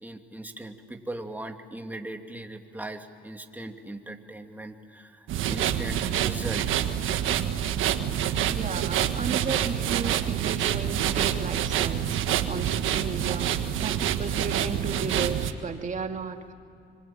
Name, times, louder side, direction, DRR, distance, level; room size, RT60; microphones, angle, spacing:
voice 1, 0.0-6.7, right 1 dB, 10° right, 4 dB, 2.6 m, -39 dB
sound 1, 5.3-15.5, right 10 dB, 85° right, 1.5 m, -27 dB
voice 2, 8.5-12.2 12.5-16.5, right 5 dB, 40° right, 5 dB, 2.4 m, -34 dB
26.0 x 25.5 x 8.9 m, 2.6 s
cardioid pair, 90°, 20 cm